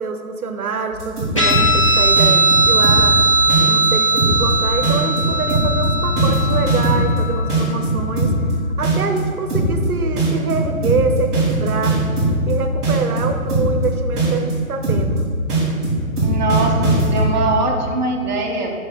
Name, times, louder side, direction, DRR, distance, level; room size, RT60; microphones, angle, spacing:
voice 1, 0.0-3.2 3.7-8.3 8.8-12.0 12.5-15.2, right 4 dB, 80° right, 6 dB, 0.8 m, -25 dB
sound 1, 0.9-1.8 2.2-3.2 3.5-3.8 4.2-4.5 4.8-7.2 7.5-8.5 8.8-9.2 9.5-9.8 10.2-12.5 12.8-13.8 14.2-14.5 14.8-15.2 15.5-17.3, right 2 dB, ahead, 1.0 m, -19 dB
Guitar, 1.4-8.3, right 1 dB, 20° left, 0.6 m, -18 dB
voice 2, 16.2-18.7, right 2 dB, 30° right, -2 dB, 0.8 m, -22 dB
7.2 x 5.3 x 3.5 m, 2.2 s
hypercardioid pair, 160°, 44 cm